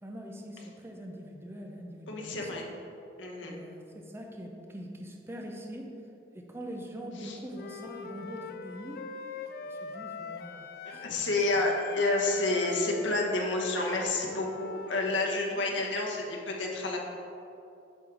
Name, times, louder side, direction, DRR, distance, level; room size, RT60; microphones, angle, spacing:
voice 1, 0.0-2.5 3.4-5.9 6.3-9.1 9.7-11.7 13.0-13.1 14.7-14.8 15.5-15.6, equal, 15° right, 1 dB, 0.5 m, -43 dB
voice 2, 2.1-2.7 3.2-3.6 7.2-7.4 10.8-17.0, left 2 dB, 85° left, -1 dB, 1.0 m, -29 dB
Wind instrument woodwind instrument, 7.5-11.2 11.4-15.3, left 4 dB, 55° left, 0.3 m, -42 dB
7.7 x 3.8 x 4.7 m, 2.7 s
head